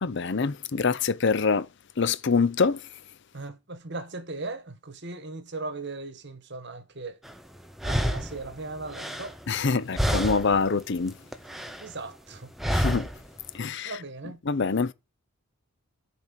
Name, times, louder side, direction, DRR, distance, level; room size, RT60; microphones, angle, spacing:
voice 1, 0.0-1.7 2.0-3.0 9.5-11.2 12.7-13.1 13.5-14.0 14.4-14.9, left 4 dB, 55° left, 0.6 m, -25 dB
voice 2, 3.3-7.2 7.8-9.4 11.8-12.5 13.8-14.4, right 3 dB, 50° right, 1.2 m, -38 dB
sound 1, 7.2-7.3 7.8-9.7 10.0-10.7 11.0-11.9 12.6-13.3, equal, ahead, 0.7 m, -28 dB
13.5 x 4.6 x 7.4 m
head